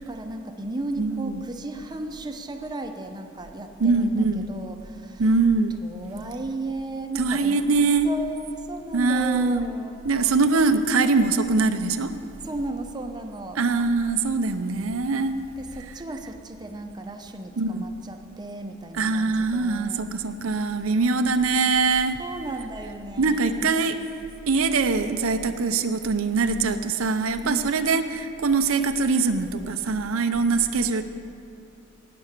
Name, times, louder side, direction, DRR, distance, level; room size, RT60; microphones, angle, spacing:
voice 1, 0.0-5.2 5.8-7.6 8.0-10.0 12.4-13.6 15.6-20.1 22.2-23.9 27.4-27.7, right 2 dB, 20° right, 4 dB, 0.7 m, -35 dB
voice 2, 1.0-1.4 3.8-4.5 5.2-5.7 7.2-8.1 8.9-9.7 10.0-12.1 13.6-15.4 15.7-16.2 17.6-17.9 18.9-22.2 22.6-22.7 23.2-24.0 24.5-31.0, right 4 dB, 90° right, 8 dB, 0.7 m, -23 dB
18.0 x 6.9 x 6.6 m, 2.6 s
head